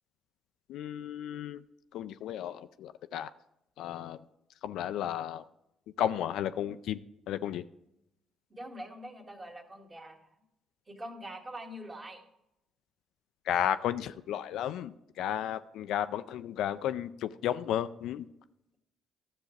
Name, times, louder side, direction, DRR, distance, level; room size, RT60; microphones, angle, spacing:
voice 1, 0.7-1.6 1.9-3.3 3.8-4.2 4.6-5.4 6.0-7.0 7.3-7.6 13.5-18.3, left 10 dB, 65° left, 12 dB, 0.3 m, -33 dB
voice 2, 8.5-10.2 10.9-12.2, right 1 dB, 30° right, 2 dB, 2.0 m, -44 dB
13.5 x 6.9 x 3.2 m, 0.83 s
hypercardioid pair, 45°, 0 cm